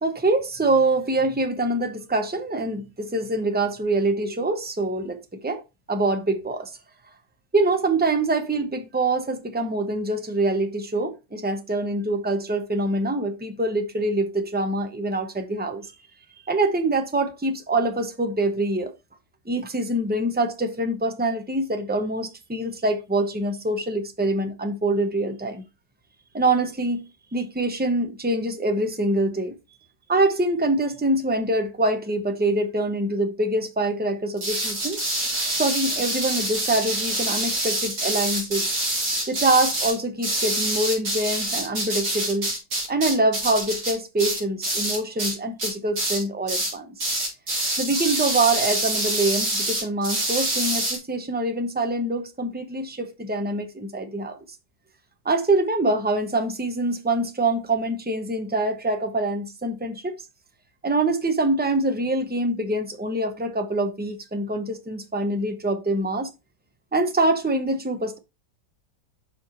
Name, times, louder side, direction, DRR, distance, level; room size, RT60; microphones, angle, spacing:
voice 1, 0.0-5.6 5.9-6.7 7.5-15.9 16.4-18.9 19.5-25.6 26.3-27.0 27.3-29.6 30.1-35.0 35.5-38.7 39.3-42.5 42.9-46.9 47.8-54.4 55.2-60.1 60.8-66.3 66.9-68.2, right 2 dB, 15° right, 0.3 m, -25 dB
sound 1, 34.4-45.3 45.6-46.2 46.5-46.7 47.0-51.0, right 1 dB, 65° right, 3.6 m, -26 dB
6.2 x 4.8 x 4.3 m
omnidirectional pair, 1.8 m